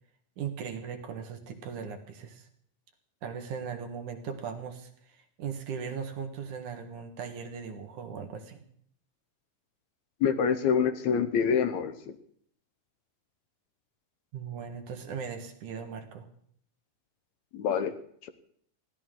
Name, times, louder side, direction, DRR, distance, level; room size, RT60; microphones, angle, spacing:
voice 1, 0.4-2.5 3.2-8.6 14.3-16.3, right 7 dB, 70° right, 6 dB, 2.9 m, -38 dB
voice 2, 10.2-11.9 17.5-17.9 18.2-18.3, left 7 dB, 70° left, 10 dB, 2.1 m, -26 dB
22.0 x 16.0 x 3.8 m, 0.63 s
omnidirectional pair, 3.7 m